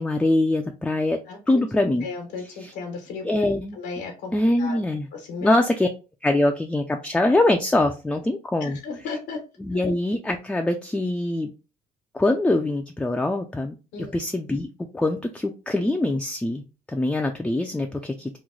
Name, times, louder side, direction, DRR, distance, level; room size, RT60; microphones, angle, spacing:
voice 1, 0.0-1.2 1.5-2.1 2.6-2.7 3.2-3.8 4.3-5.1 5.4-5.9 6.2-8.8 9.6-11.5 12.1-13.7 14.1-14.7 14.9-16.6 16.9-18.4, left 2 dB, 5° left, 4 dB, 0.3 m, -23 dB
voice 2, 1.3-1.6 2.0-3.2 3.7-4.3 4.6-4.8 5.1-5.5 8.6-9.4 13.9-14.2, left 4 dB, 90° left, 3 dB, 1.0 m, -34 dB
3.0 x 2.1 x 3.7 m, 0.31 s
cardioid pair, 110°, 17 cm